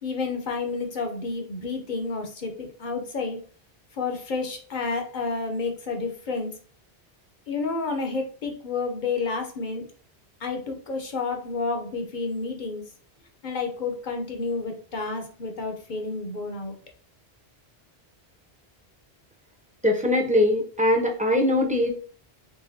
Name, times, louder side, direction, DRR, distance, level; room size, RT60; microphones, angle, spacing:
voice 1, 0.0-3.4 3.9-6.5 7.5-9.8 10.4-12.9 13.4-16.8, left 4 dB, 50° left, 3 dB, 0.8 m, -30 dB
voice 2, 19.8-21.9, left 1 dB, 10° right, 1 dB, 0.6 m, -21 dB
3.9 x 3.5 x 2.6 m, 0.43 s
omnidirectional pair, 1.1 m